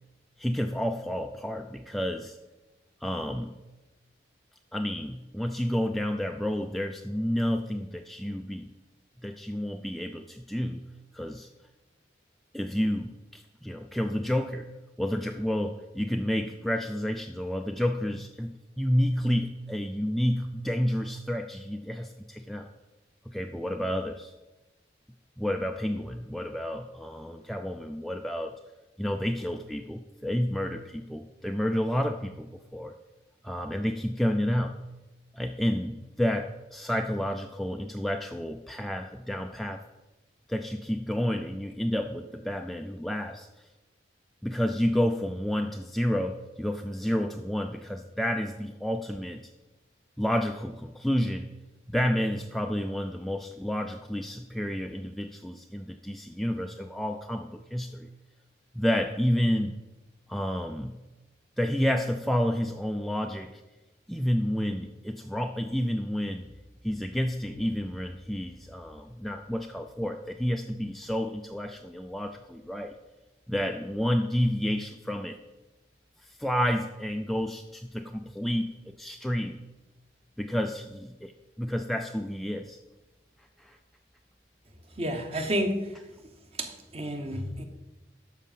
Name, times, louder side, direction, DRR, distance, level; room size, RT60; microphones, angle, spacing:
voice 1, 0.4-2.4 3.0-3.5 4.7-8.7 9.2-10.8 11.1-11.5 12.5-14.7 15.0-22.7 23.3-24.3 25.4-28.5 29.0-32.9 33.4-34.8 35.3-39.8 40.5-43.7 44.4-49.5 50.2-51.5 51.9-58.1 58.7-59.7 60.3-61.0 61.6-63.6 64.1-66.5 66.8-72.9 73.5-75.4 76.2-79.6 80.4-82.8 83.6-83.8, equal, ahead, 0.4 m, -30 dB
voice 2, 85.0-86.0 86.5-87.6, equal, 35° right, 1.2 m, -30 dB
12.5 x 5.0 x 7.4 m
head